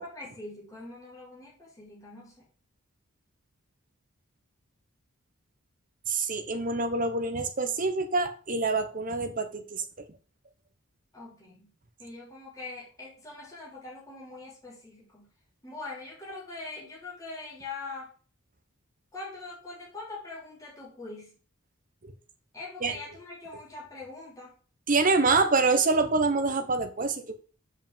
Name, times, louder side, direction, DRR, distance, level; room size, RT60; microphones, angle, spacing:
voice 1, 0.0-2.3 11.1-11.7 12.0-15.3 15.6-18.1 19.1-21.3 22.5-24.5, left 3 dB, 15° left, 3.4 m, -42 dB
voice 2, 6.1-9.8 22.0-22.1 22.8-22.9 24.9-27.3, right 3 dB, 40° right, 1.1 m, -26 dB
7.5 x 5.3 x 7.3 m
head